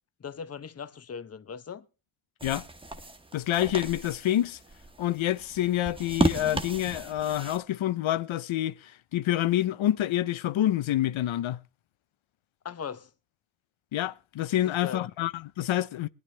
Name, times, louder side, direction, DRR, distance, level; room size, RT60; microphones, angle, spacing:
voice 1, 0.2-1.9 12.6-13.1 14.8-15.0, left 7 dB, 30° left, 0.8 m, -39 dB
sound 1, 2.4-7.6, right 2 dB, 10° right, 1.1 m, -34 dB
voice 2, 3.3-4.6 5.0-11.6 13.9-16.1, left 13 dB, 85° left, 0.7 m, -27 dB
22.0 x 10.5 x 3.3 m
wide cardioid pair, 140°, 47 cm